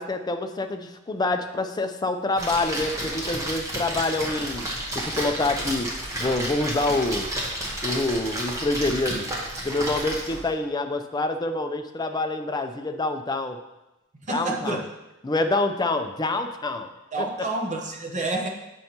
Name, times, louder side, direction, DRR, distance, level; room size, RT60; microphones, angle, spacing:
voice 1, 0.0-4.7 4.9-5.9 6.2-7.3 7.8-9.3 9.6-13.6 14.3-14.8 15.2-16.9 17.2-17.5, left 2 dB, 20° left, 7 dB, 0.4 m, -26 dB
Splash splatter, 2.3-10.5, right 1 dB, 15° right, 1.1 m, -31 dB
voice 2, 14.3-14.8 17.1-18.5, right 2 dB, 35° right, 2 dB, 0.8 m, -28 dB
7.8 x 5.4 x 2.9 m, 0.95 s
head